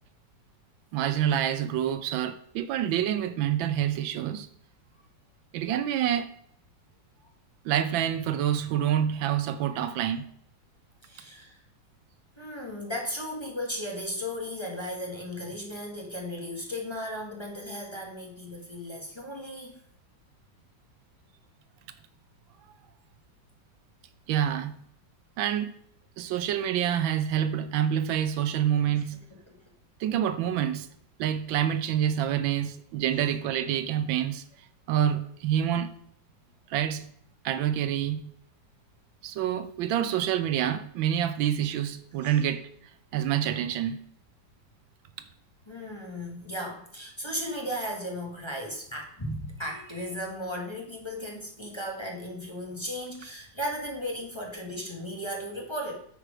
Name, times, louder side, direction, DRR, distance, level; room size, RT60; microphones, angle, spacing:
voice 1, 0.9-4.5 5.5-6.3 7.6-10.2 24.3-24.8 25.4-25.8 26.2-29.2 30.0-30.9 31.2-34.4 34.9-35.9 36.7-37.1 37.4-38.3 39.2-42.6 43.1-44.0, right 10 dB, 85° right, 1.4 m, -27 dB
voice 2, 11.0-11.6 12.4-19.8 28.9-29.0 29.5-29.6 42.2-42.4 45.7-56.1, equal, 15° left, 1.4 m, -36 dB
8.9 x 4.8 x 5.0 m
omnidirectional pair, 2.1 m